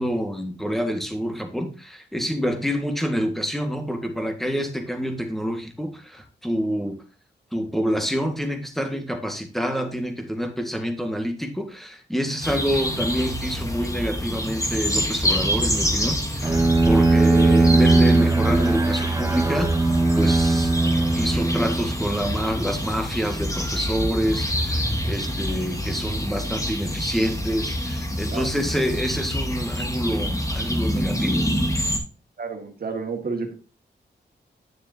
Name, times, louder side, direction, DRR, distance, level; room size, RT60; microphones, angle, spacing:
voice 1, 0.0-7.0 7.5-19.7 20.2-20.7 21.1-31.7, equal, ahead, 5 dB, 1.8 m, -27 dB
sound 1, 12.4-32.0, equal, 20° left, 2.3 m, -27 dB
Bowed string instrument, 16.4-22.2, right 2 dB, 15° right, 0.7 m, -19 dB
voice 2, 32.4-33.5, right 4 dB, 55° right, 4 dB, 2.0 m, -30 dB
10.0 x 6.9 x 2.8 m, 0.36 s
wide cardioid pair, 90°, 18 cm